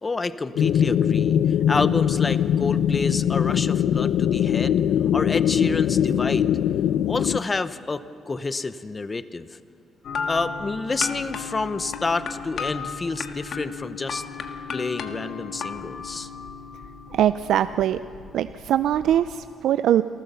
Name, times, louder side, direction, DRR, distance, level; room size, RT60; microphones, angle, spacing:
voice 1, 0.0-1.4 1.7-4.8 5.1-6.6 7.1-9.5 10.3-14.2 14.7-16.3, left 3 dB, 30° left, 14 dB, 0.8 m, -28 dB
sound 1, 0.6-7.4, left 9 dB, 80° left, 0.5 m, -21 dB
sound 2, 10.0-19.4, left 5 dB, 60° left, 1.5 m, -35 dB
voice 2, 17.1-18.0 18.3-20.0, right 11 dB, 75° right, 12 dB, 0.4 m, -22 dB
27.0 x 14.0 x 6.9 m, 2.4 s
cardioid pair, 90°, 0 cm